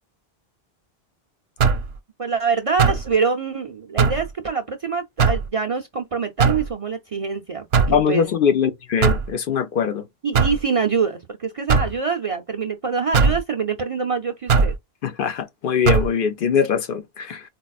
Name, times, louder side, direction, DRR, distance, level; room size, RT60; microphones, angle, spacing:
sound 1, 1.6-1.9 2.8-3.1 4.0-4.3 5.2-5.5 6.4-6.7 7.7-8.0 9.0-9.3 10.3-10.6 11.7-11.9 13.1-13.4 14.5-14.8 15.8-16.1, right 5 dB, 80° right, 0.9 m, -18 dB
voice 1, 2.2-8.2 10.2-14.7, right 5 dB, 50° right, 0.4 m, -25 dB
voice 2, 7.9-10.1 15.0-17.4, left 7 dB, 65° left, 0.7 m, -22 dB
4.1 x 2.3 x 2.3 m
omnidirectional pair, 1.0 m